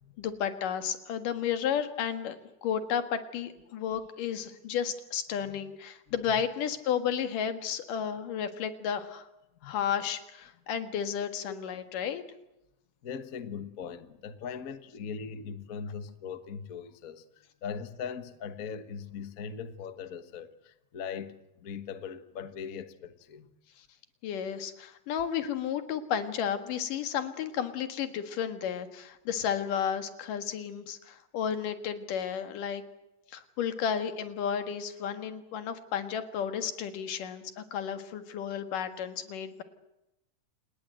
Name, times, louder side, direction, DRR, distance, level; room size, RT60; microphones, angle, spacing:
voice 1, 0.2-2.4 2.6-9.3 9.6-12.2 24.2-32.8 33.3-39.6, left 8 dB, 80° left, 3.3 m, -32 dB
voice 2, 13.0-23.5, left 6 dB, 55° left, 0.9 m, -40 dB
28.5 x 19.5 x 7.8 m
omnidirectional pair, 3.7 m